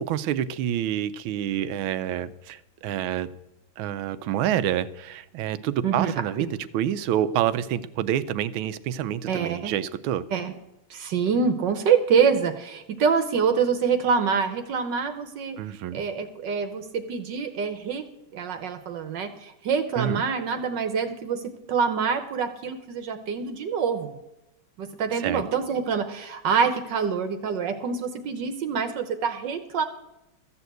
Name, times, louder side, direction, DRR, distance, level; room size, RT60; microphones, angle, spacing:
voice 1, 0.0-3.3 3.8-6.5 6.7-10.2 15.6-16.0 20.0-20.2 25.2-25.4, right 10 dB, 90° right, 15 dB, 1.5 m, -27 dB
voice 2, 9.3-9.7 10.3-10.5 10.9-15.6 15.9-18.0 18.3-21.4 21.7-24.1 24.8-29.9, right 6 dB, 65° right, 8 dB, 1.5 m, -25 dB
14.0 x 7.0 x 8.0 m, 0.91 s
omnidirectional pair, 2.2 m